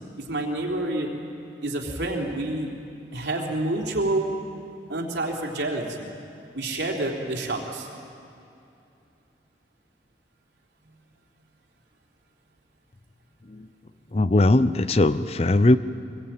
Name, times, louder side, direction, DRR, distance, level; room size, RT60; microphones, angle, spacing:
voice 1, 0.2-1.1 1.6-2.7 3.1-4.3 4.9-6.1 6.5-7.9, right 2 dB, 85° right, 0 dB, 3.5 m, -28 dB
voice 2, 14.1-15.8, left 2 dB, 35° left, 14 dB, 0.6 m, -19 dB
24.0 x 21.0 x 9.0 m, 2.7 s
head